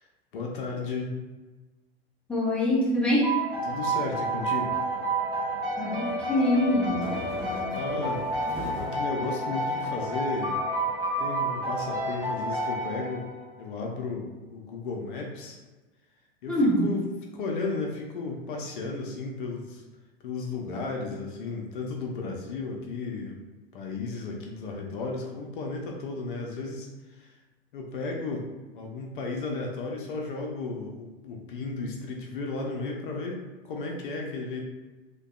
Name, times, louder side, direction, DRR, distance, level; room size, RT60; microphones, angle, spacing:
voice 1, 0.3-1.1 3.6-4.8 7.8-8.2 8.7-10.6 11.2-13.2 13.6-15.6 16.4-17.1 17.3-19.8 20.2-23.4 23.7-26.9 27.2-27.4 27.7-28.5 28.7-34.6, left 3 dB, 55° left, 0 dB, 0.5 m, -34 dB
voice 2, 2.3-3.3 5.8-7.0 16.5-16.8, left 1 dB, 5° left, -5 dB, 0.4 m, -24 dB
sound 1, 3.2-13.6, right 1 dB, 65° right, 1.0 m, -30 dB
sound 2, 6.0-9.0 9.5-10.4, equal, 40° right, 0.8 m, -40 dB
2.6 x 2.2 x 2.4 m, 1.2 s
figure-of-eight pair, 90°, 32 cm